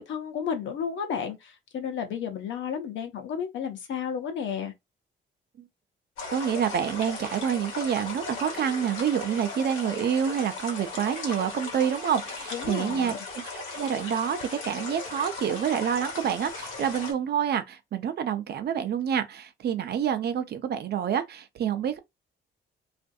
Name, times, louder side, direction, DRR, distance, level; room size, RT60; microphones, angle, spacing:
voice 1, 0.0-4.7 12.5-13.2, left 7 dB, 70° left, 0.8 m, -32 dB
sound 1, 6.2-17.1, left 3 dB, 90° left, 1.0 m, -37 dB
voice 2, 6.3-22.0, right 8 dB, 55° right, 0.5 m, -28 dB
2.5 x 2.5 x 2.2 m
cardioid pair, 90°, 20 cm